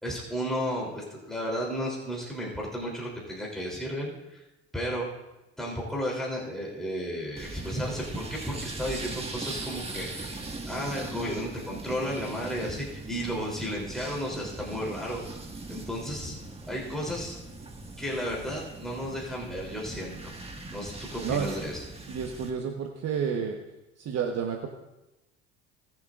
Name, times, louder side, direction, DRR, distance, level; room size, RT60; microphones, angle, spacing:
voice 1, 0.0-4.4 4.7-5.1 5.6-16.4 16.7-17.4 18.0-20.3 20.7-21.8, equal, ahead, -4 dB, 3.4 m, -33 dB
sound 1, 7.4-22.5, right 2 dB, 15° right, 1.8 m, -40 dB
voice 2, 22.1-23.6 24.0-24.7, right 7 dB, 45° right, 2 dB, 1.2 m, -30 dB
20.5 x 7.6 x 2.5 m, 0.99 s
hypercardioid pair, 75°, 35 cm